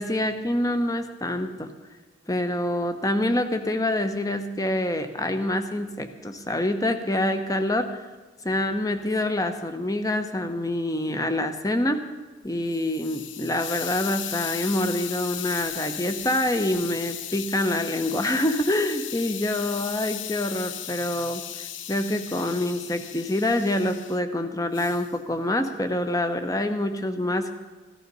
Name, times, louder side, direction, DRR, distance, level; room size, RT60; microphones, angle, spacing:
voice 1, 0.0-1.7 2.3-8.0 8.4-12.0 12.4-27.5, left 1 dB, 20° left, 8 dB, 0.9 m, -26 dB
Hiss, 12.4-24.2 24.7-25.1, left 10 dB, 85° left, 0.8 m, -36 dB
15.0 x 13.5 x 5.4 m, 1.3 s
head